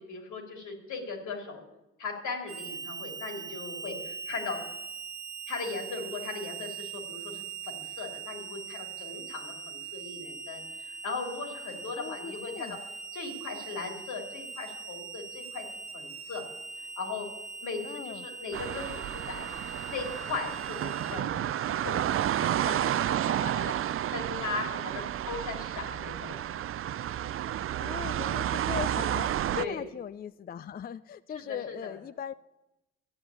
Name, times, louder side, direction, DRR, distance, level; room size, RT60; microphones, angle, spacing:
voice 1, 0.0-1.6 2.0-4.6 5.5-12.8 13.1-15.7 15.9-16.4 16.8-17.3 17.6-19.5 19.9-26.3 29.5-29.8 31.3-31.9, left 4 dB, 75° left, 3 dB, 3.1 m, -38 dB
Harmonica, 2.5-21.2, right 6 dB, 80° right, 1.4 m, -41 dB
voice 2, 12.0-12.8 17.8-18.2 27.8-32.3, left 8 dB, 30° left, 15 dB, 0.4 m, -39 dB
sound 1, 18.5-29.7, right 11 dB, 45° right, 0.4 m, -31 dB
13.0 x 8.6 x 8.3 m, 0.95 s
cardioid pair, 90°, 30 cm